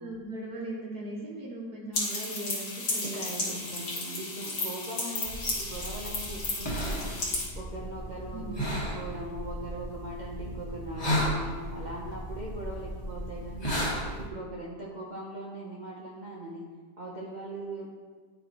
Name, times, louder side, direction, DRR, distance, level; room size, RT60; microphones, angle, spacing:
voice 1, 0.0-4.0 8.3-8.7, right 1 dB, 60° right, -4 dB, 2.3 m, -39 dB
sound 1, 1.9-7.5, left 2 dB, 90° left, 2.4 m, -33 dB
voice 2, 3.1-7.2 7.6-13.7 14.2-16.6 17.0-17.9, right 1 dB, 35° right, -5 dB, 0.8 m, -40 dB
sound 2, 5.2-14.3, equal, 15° left, 1.5 m, -34 dB
11.0 x 4.6 x 3.0 m, 1.5 s
omnidirectional pair, 1.8 m